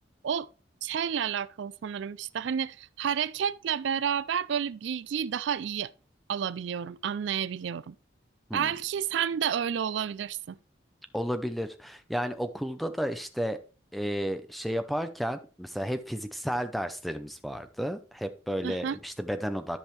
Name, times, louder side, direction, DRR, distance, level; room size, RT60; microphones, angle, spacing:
voice 1, 0.8-5.9 6.3-7.9 8.5-10.6 18.6-19.0, right 8 dB, 65° right, 0.3 m, -30 dB
voice 2, 11.1-13.6 13.9-19.8, equal, ahead, 0.6 m, -32 dB
13.5 x 5.4 x 3.2 m
head